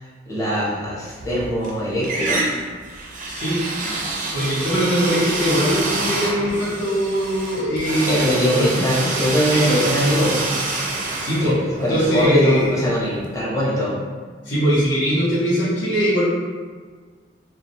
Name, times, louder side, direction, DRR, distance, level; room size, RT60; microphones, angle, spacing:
voice 1, 0.3-2.5 3.5-3.7 8.1-10.4 11.4-11.5 11.8-14.0, equal, 15° left, -7 dB, 0.6 m, -22 dB
sound 1, 1.1-1.7 2.0-12.9, right 2 dB, 45° right, 0.4 m, -27 dB
voice 2, 3.3-3.6 4.3-9.0 9.5-10.0 11.2-11.6 11.9-12.7 14.4-16.2, equal, 80° left, -8 dB, 0.9 m, -21 dB
2.3 x 2.1 x 2.7 m, 1.5 s
head